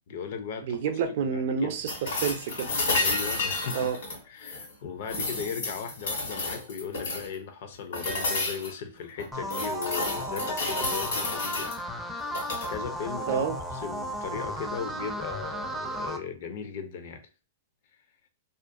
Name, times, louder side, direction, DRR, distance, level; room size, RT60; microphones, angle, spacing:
voice 1, 0.0-0.8 1.2-1.8 2.9-3.8 4.3-11.8 12.1-12.3 12.7-13.4 13.8-17.2, left 6 dB, 60° left, 0.4 m, -37 dB
voice 2, 0.6-2.7 3.7-4.0 13.3-13.6, right 6 dB, 60° right, 0.4 m, -29 dB
sound 1, 1.9-4.7 5.1-7.3 7.9-8.7 9.2-11.8 12.3-12.7 14.7-14.8, left 3 dB, 75° left, 1.3 m, -31 dB
sound 2, 9.3-16.2, right 1 dB, 5° left, 0.4 m, -34 dB
2.4 x 2.2 x 2.5 m
hypercardioid pair, 140°, 0 cm